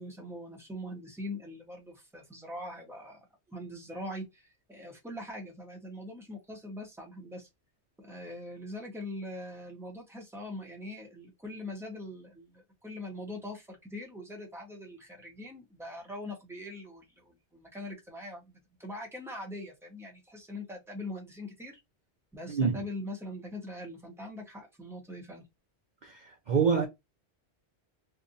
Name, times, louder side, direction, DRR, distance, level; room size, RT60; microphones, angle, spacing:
voice 1, 0.0-3.2 3.5-7.5 8.0-21.8 22.3-25.5, left 1 dB, ahead, 1.0 m, -42 dB
voice 2, 22.5-22.8 26.0-26.9, right 6 dB, 50° right, 0.7 m, -27 dB
2.7 x 2.5 x 3.8 m
omnidirectional pair, 1.2 m